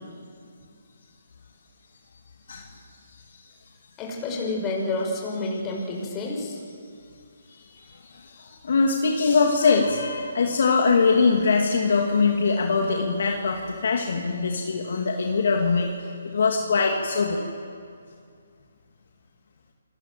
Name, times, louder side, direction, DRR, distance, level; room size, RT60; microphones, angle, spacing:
voice 1, 4.0-6.6, left 2 dB, 15° left, -1 dB, 6.3 m, -29 dB
voice 2, 7.7-15.9 16.3-17.4, left 4 dB, 60° left, 1 dB, 2.8 m, -22 dB
27.5 x 20.5 x 7.9 m, 2.3 s
hypercardioid pair, 155°, 0 cm